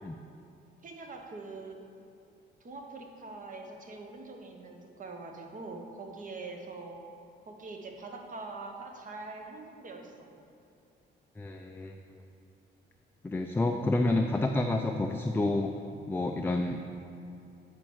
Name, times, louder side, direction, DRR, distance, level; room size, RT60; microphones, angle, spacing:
voice 1, 0.8-1.8 2.6-7.0 7.5-10.3, right 3 dB, 40° right, 3 dB, 1.0 m, -43 dB
voice 2, 11.4-12.2 13.2-15.7 16.1-16.8, left 2 dB, 10° left, 3 dB, 0.3 m, -29 dB
8.8 x 4.3 x 4.6 m, 2.6 s
cardioid pair, 90°, 20 cm